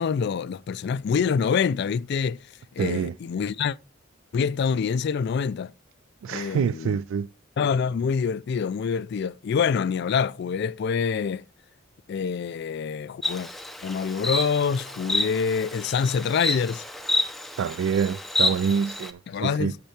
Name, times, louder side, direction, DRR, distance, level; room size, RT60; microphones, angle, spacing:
voice 1, 0.0-2.4 2.7-3.8 4.3-5.7 6.3-7.0 7.6-11.4 12.1-13.5 13.8-16.8 19.3-19.8, left 6 dB, 55° left, 0.3 m, -26 dB
voice 2, 2.8-3.1 6.2-7.3 17.6-19.7, right 6 dB, 75° right, 0.3 m, -26 dB
Insect, 13.2-19.1, left 1 dB, ahead, 0.6 m, -29 dB
10.0 x 6.6 x 2.8 m
head